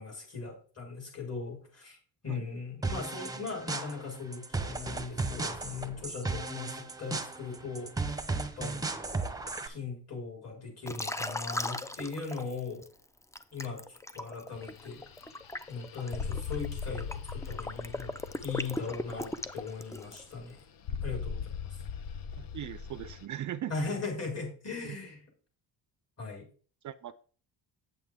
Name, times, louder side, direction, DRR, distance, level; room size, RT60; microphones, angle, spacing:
voice 1, 0.0-2.0 2.2-8.3 8.6-8.9 9.6-12.9 13.5-15.0 15.7-18.1 18.4-20.6 21.0-21.8 23.7-25.2 26.2-26.5, left 4 dB, 35° left, -1 dB, 4.8 m, -39 dB
sound 1, 2.8-9.7, right 3 dB, 10° right, 0.9 m, -35 dB
Liquid, 10.9-12.9 13.3-20.3, left 1 dB, 5° left, 0.4 m, -38 dB
sound 2, 14.5-23.3, left 6 dB, 55° left, 0.8 m, -40 dB
voice 2, 22.4-23.7 24.8-25.0 26.8-27.1, right 11 dB, 45° right, 14 dB, 0.5 m, -39 dB
8.6 x 7.9 x 3.6 m, 0.42 s
cardioid pair, 110°, 42 cm